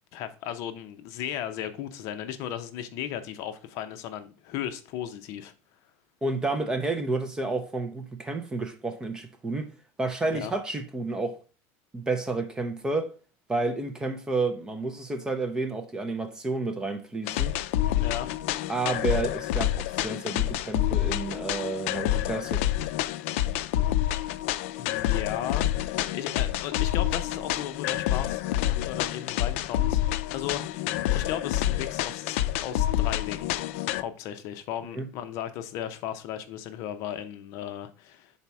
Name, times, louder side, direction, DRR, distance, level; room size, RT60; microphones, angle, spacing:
voice 1, 0.1-5.5 10.3-10.5 17.8-18.3 24.8-30.0 30.3-30.9 31.1-33.5 33.9-38.3, left 10 dB, 45° left, 0.6 m, -36 dB
voice 2, 6.2-9.7 10.0-11.4 11.9-13.1 13.5-17.5 18.7-22.7 34.9-35.1, right 3 dB, 10° right, 0.5 m, -30 dB
sound 1, 17.3-34.0, left 13 dB, 85° left, 0.4 m, -28 dB
5.6 x 4.1 x 4.6 m
cardioid pair, 175°, 7 cm